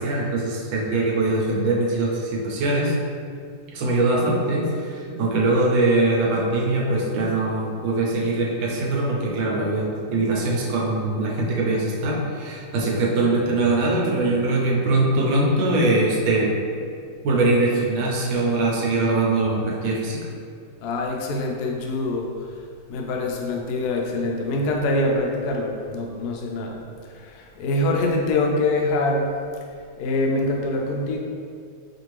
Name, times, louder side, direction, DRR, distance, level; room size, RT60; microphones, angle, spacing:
voice 1, 0.0-2.9 3.7-16.5 17.2-20.2, right 2 dB, 80° right, -3 dB, 1.4 m, -22 dB
voice 2, 20.8-22.3 22.9-26.8 27.1-29.3 30.0-31.2, left 2 dB, 70° left, 0 dB, 0.9 m, -24 dB
4.9 x 2.6 x 3.1 m, 2.2 s
omnidirectional pair, 2.1 m